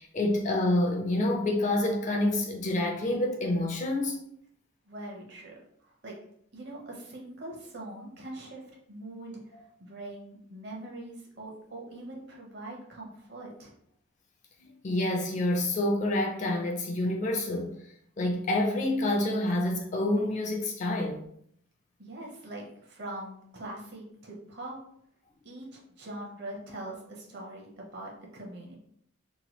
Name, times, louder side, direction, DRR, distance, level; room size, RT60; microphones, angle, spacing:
voice 1, 0.0-4.2 14.6-17.7 18.2-21.3, left 1 dB, 35° left, 0.4 m, -28 dB
voice 2, 4.9-5.6 5.8-6.2 6.5-13.7 22.0-24.8 25.4-28.7, right 1 dB, 50° right, 0.8 m, -42 dB
2.9 x 2.2 x 3.0 m
head